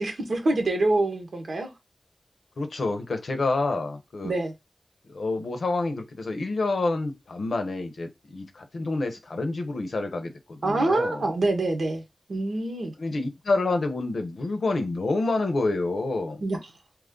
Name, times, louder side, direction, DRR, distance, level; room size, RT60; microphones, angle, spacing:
voice 1, 0.0-1.7 4.2-4.5 10.6-12.0 12.3-12.9 16.4-16.6, right 2 dB, 80° right, 1.1 m, -25 dB
voice 2, 2.6-4.3 5.1-11.3 13.0-16.4, left 3 dB, 80° left, 0.7 m, -28 dB
3.0 x 2.4 x 3.7 m
cardioid pair, 45°, 0 cm